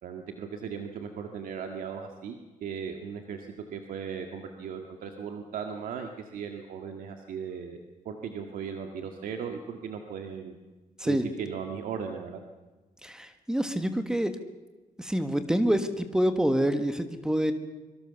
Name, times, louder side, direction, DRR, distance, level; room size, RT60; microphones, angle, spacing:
voice 1, 0.0-7.8 8.1-10.6 11.0-12.4, right 6 dB, 90° right, 4 dB, 1.9 m, -37 dB
voice 2, 13.0-14.3 15.0-17.5, equal, 5° right, 9 dB, 1.5 m, -26 dB
25.0 x 23.5 x 7.0 m, 1.2 s
cardioid pair, 130°, 14 cm